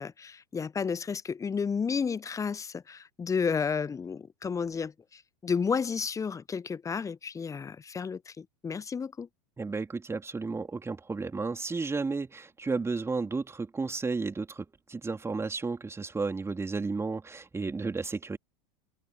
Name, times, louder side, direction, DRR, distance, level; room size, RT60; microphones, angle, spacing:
voice 1, 0.0-9.3, left 6 dB, 15° left, 0.9 m, -32 dB
voice 2, 9.6-18.4, right 4 dB, 15° right, 3.7 m, -33 dB
figure-of-eight pair, 85°, 20 cm